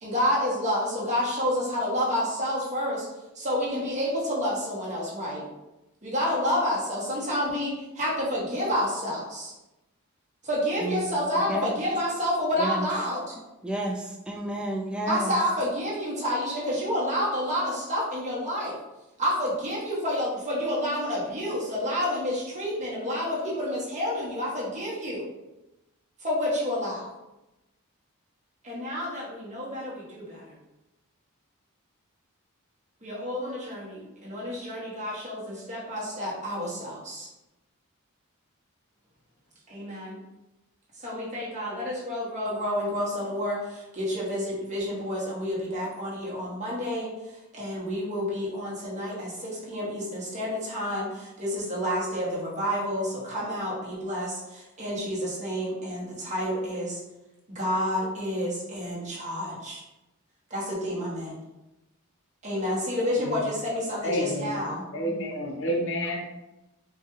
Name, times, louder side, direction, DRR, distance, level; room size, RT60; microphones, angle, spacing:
voice 1, 0.0-3.1 3.3-5.5 6.0-9.5 10.4-13.3 15.1-18.8 19.2-25.3 26.2-27.1 28.6-30.5 33.0-37.3 39.7-40.2 41.0-47.1 47.5-57.0 57.5-59.8 60.5-61.3 62.4-64.8, equal, 35° right, -6 dB, 1.2 m, -29 dB
voice 2, 13.6-15.3, right 1 dB, 5° right, 0 dB, 0.3 m, -30 dB
voice 3, 63.2-63.5 64.0-64.6 64.9-66.3, equal, 60° left, 0 dB, 0.7 m, -29 dB
4.5 x 2.3 x 3.1 m, 0.98 s
head